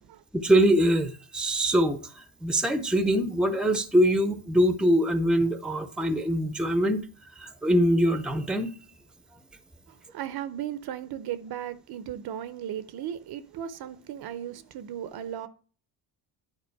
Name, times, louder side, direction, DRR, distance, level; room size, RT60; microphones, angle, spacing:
voice 1, 0.3-2.0 2.4-7.0 7.4-8.7, equal, ahead, 0.6 m, -23 dB
voice 2, 9.9-15.5, right 10 dB, 55° right, 0.7 m, -36 dB
9.7 x 4.1 x 4.6 m
cardioid pair, 115°, 45 cm